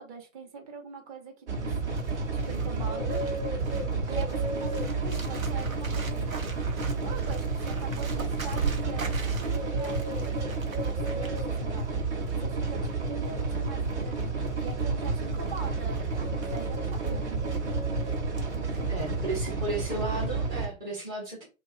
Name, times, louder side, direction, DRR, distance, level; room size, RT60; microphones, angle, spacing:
voice 1, 0.0-1.7 2.3-3.2 4.0-6.5 7.0-11.9 12.3-17.4, right 4 dB, 30° right, 3 dB, 0.7 m, -43 dB
sound 1, 1.5-20.7, right 3 dB, 60° right, 0.9 m, -31 dB
Bird, 1.6-19.4 19.7-20.0, right 3 dB, 85° right, 0.7 m, -39 dB
voice 2, 18.9-21.4, right 2 dB, 10° right, -4 dB, 0.4 m, -34 dB
2.8 x 2.2 x 2.5 m, 0.30 s
figure-of-eight pair, 115°, 40 cm